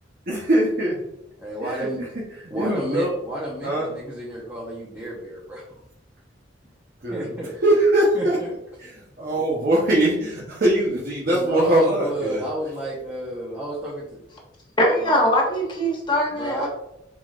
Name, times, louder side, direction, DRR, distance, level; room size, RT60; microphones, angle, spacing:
voice 1, 0.3-1.0 1.6-1.9 2.5-3.1 3.6-3.9 7.0-7.3 7.6-8.4 8.8-12.5, right 1 dB, 50° right, -4 dB, 1.0 m, -21 dB
voice 2, 1.4-2.1 2.5-5.6 7.1-7.6 8.1-8.5 11.3-14.2 16.3-16.7, right 1 dB, 10° right, -6 dB, 0.9 m, -31 dB
voice 3, 14.8-16.7, equal, 25° left, -2 dB, 1.2 m, -21 dB
4.8 x 4.0 x 2.5 m, 0.84 s
head